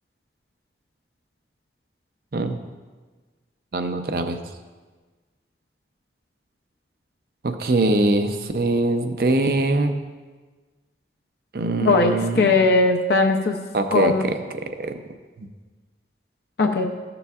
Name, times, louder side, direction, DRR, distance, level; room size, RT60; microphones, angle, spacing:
voice 1, 3.7-4.4 7.4-9.9 11.5-12.6 13.7-15.0 15.4-15.5, right 2 dB, 55° right, 7 dB, 0.5 m, -23 dB
voice 2, 11.8-13.6 13.9-14.2 16.6-16.9, left 3 dB, 70° left, 3 dB, 0.5 m, -19 dB
13.0 x 6.9 x 2.4 m, 1.4 s
head